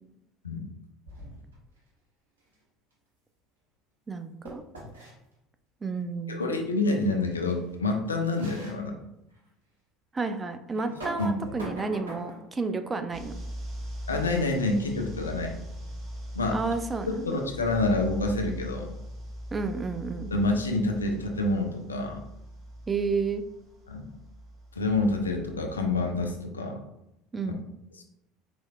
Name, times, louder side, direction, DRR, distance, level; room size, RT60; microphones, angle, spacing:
sound 1, 1.1-1.6 4.4-5.1 7.0-7.1 7.5-7.6 8.3-8.8 9.4-9.5 10.8-12.5, right 1 dB, 80° right, 0.9 m, -41 dB
voice 1, 4.1-4.6 5.8-6.5 10.1-13.3 16.5-17.4 19.5-20.3 22.9-23.4 27.3-27.6, right 4 dB, 20° right, 7 dB, 0.4 m, -31 dB
voice 2, 6.3-9.0 11.2-11.6 14.1-15.5 16.4-16.6 17.1-18.9 20.3-22.2 23.9-24.1 24.8-26.8 27.4-27.5 28.0-28.1, left 2 dB, 85° left, 4 dB, 0.4 m, -27 dB
sound 2, 13.1-26.3, equal, 40° right, 1.2 m, -41 dB
4.2 x 3.2 x 2.2 m, 0.85 s
figure-of-eight pair, 65°, 0 cm